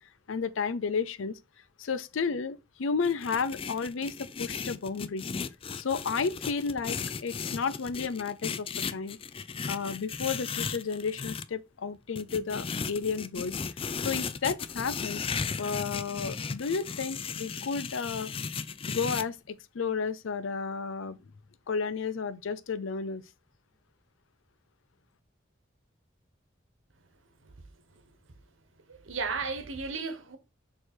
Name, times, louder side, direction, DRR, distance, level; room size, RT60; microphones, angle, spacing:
voice 1, 0.3-1.4 1.8-5.3 5.7-9.2 9.7-13.6 14.0-15.2 15.6-18.3 18.9-21.2 21.7-23.2, left 5 dB, 85° left, 0.5 m, -32 dB
sound 1, 3.0-11.4 12.2-19.2, left 5 dB, 30° left, 0.4 m, -36 dB
voice 2, 28.9-30.4, right 4 dB, 90° right, 1.2 m, -34 dB
6.6 x 3.2 x 4.4 m
head